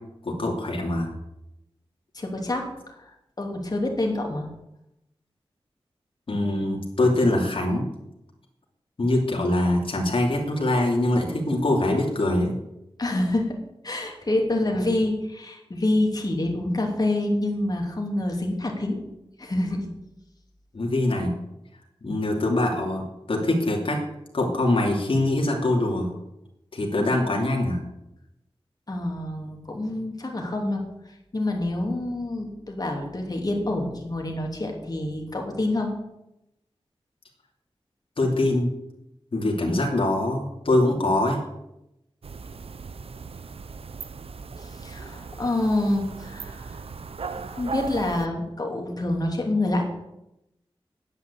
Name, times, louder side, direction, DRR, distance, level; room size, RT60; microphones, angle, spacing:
voice 1, 0.2-1.1 6.3-7.9 9.0-12.5 20.7-21.4 22.0-24.0 24.3-26.1 26.7-27.8 38.2-38.7 39.3-41.4, left 1 dB, 60° left, -1 dB, 3.0 m, -23 dB
voice 2, 2.1-4.5 13.0-13.5 13.8-19.0 19.4-19.9 28.9-30.8 31.3-35.9 44.6-46.8 47.5-49.9, left 1 dB, 40° left, 1 dB, 3.0 m, -27 dB
sound 1, 42.2-48.3, right 4 dB, 75° right, 0.7 m, -37 dB
9.9 x 9.3 x 8.4 m, 0.88 s
wide cardioid pair, 95°, 10 cm